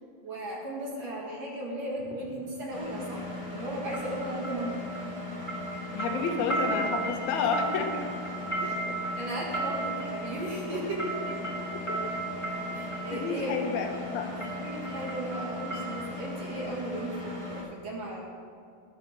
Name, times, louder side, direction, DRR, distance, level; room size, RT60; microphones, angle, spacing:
voice 1, 0.2-4.9 6.1-6.2 9.2-11.2 12.7-13.7 14.5-18.2, right 1 dB, 50° right, -3 dB, 2.6 m, -36 dB
sound 1, 2.0-2.2 3.9-5.2 5.5-13.2 13.9-14.1 14.4-16.3 16.6-16.7, right 2 dB, 15° left, 1.8 m, -35 dB
Engine, 2.7-17.6, left 2 dB, 15° right, 1.3 m, -39 dB
voice 2, 5.9-8.0 8.6-8.8 11.9-12.0 13.1-14.5, left 5 dB, 80° left, 3 dB, 3.1 m, -30 dB
19.5 x 6.6 x 5.6 m, 2.4 s
omnidirectional pair, 4.4 m